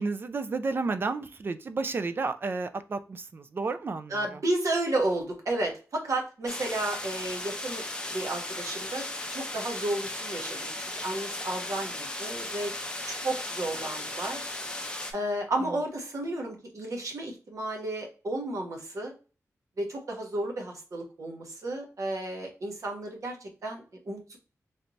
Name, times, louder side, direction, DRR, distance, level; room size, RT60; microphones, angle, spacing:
voice 1, 0.0-4.4 15.6-15.7, right 3 dB, 40° right, 10 dB, 0.3 m, -32 dB
voice 2, 4.1-9.0 9.3-12.7 13.0-14.5 15.1-19.1 19.8-24.4, right 1 dB, 65° right, 1 dB, 1.0 m, -32 dB
sound 1, 6.5-15.1, left 1 dB, 15° left, 0.6 m, -36 dB
3.3 x 2.7 x 2.8 m, 0.35 s
wide cardioid pair, 150°, 6 cm